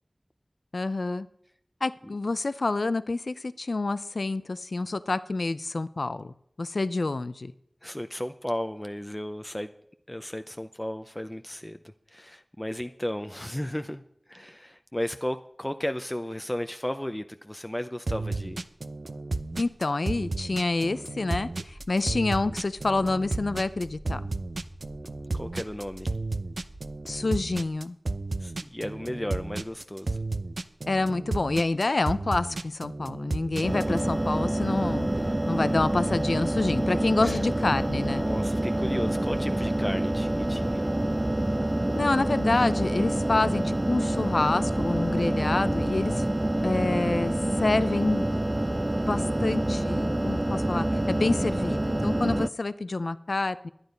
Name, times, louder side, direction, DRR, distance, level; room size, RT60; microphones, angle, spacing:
voice 1, 0.7-1.3 1.8-7.5 19.6-24.2 27.1-28.0 30.9-35.1 35.5-38.3 41.9-46.2 46.6-48.2 49.1-53.7, left 3 dB, 80° left, 14 dB, 0.6 m, -28 dB
voice 2, 7.8-9.7 10.1-11.8 12.1-14.0 14.3-18.6 25.3-26.1 28.4-30.2 37.2-37.4 38.2-40.9, left 1 dB, 15° left, 8 dB, 0.6 m, -34 dB
sound 1, 18.1-34.0, right 2 dB, 85° right, 0.6 m, -33 dB
sound 2, 21.6-27.2, right 1 dB, 55° right, 1.4 m, -48 dB
sound 3, 33.6-52.5, right 1 dB, 30° right, 0.4 m, -27 dB
11.5 x 9.8 x 5.2 m, 0.72 s
wide cardioid pair, 55°, 0 cm